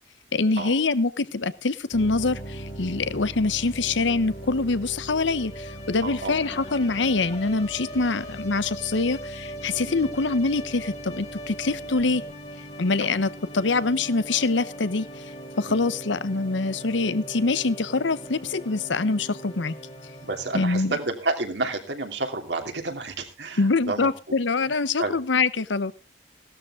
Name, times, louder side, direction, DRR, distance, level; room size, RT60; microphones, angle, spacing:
voice 1, 0.3-12.2 12.8-15.3 15.6-19.7 20.5-20.9 23.6-25.9, left 3 dB, 85° left, 16 dB, 0.8 m, -25 dB
sound 1, 1.9-20.6, right 1 dB, 35° left, 2.3 m, -39 dB
voice 2, 6.0-6.3 8.0-8.1 9.8-10.1 13.0-13.1 15.7-15.8 20.2-24.3 24.7-25.2, right 3 dB, 70° right, 4 dB, 2.8 m, -30 dB
17.0 x 12.5 x 3.6 m, 0.33 s
head